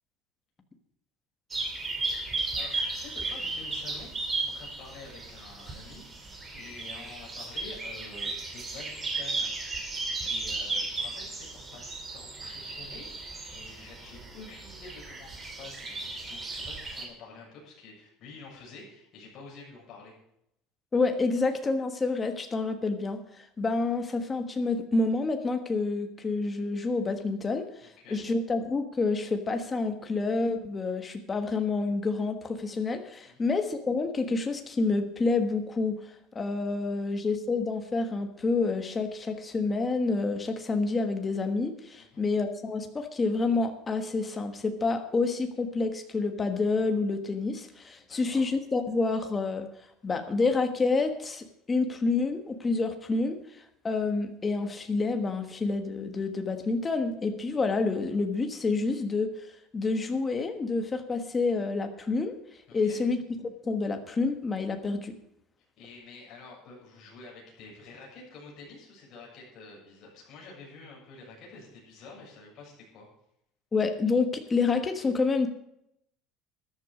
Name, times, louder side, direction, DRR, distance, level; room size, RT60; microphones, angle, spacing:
sound 1, 1.5-17.1, right 3 dB, 15° right, 2.4 m, -35 dB
voice 1, 2.6-9.5 9.8-20.2 27.8-28.2 33.3-33.5 36.9-37.1 42.0-42.2 48.1-48.4 62.7-63.0 65.8-73.1, left 3 dB, 35° left, -3 dB, 7.2 m, -49 dB
voice 2, 20.9-27.6 28.1-35.9 36.3-49.7 50.0-53.4 53.8-59.3 59.7-62.3 62.7-65.1 73.7-75.5, left 3 dB, 15° left, 6 dB, 1.4 m, -28 dB
14.0 x 11.5 x 5.1 m, 0.77 s
cardioid pair, 175°, 0 cm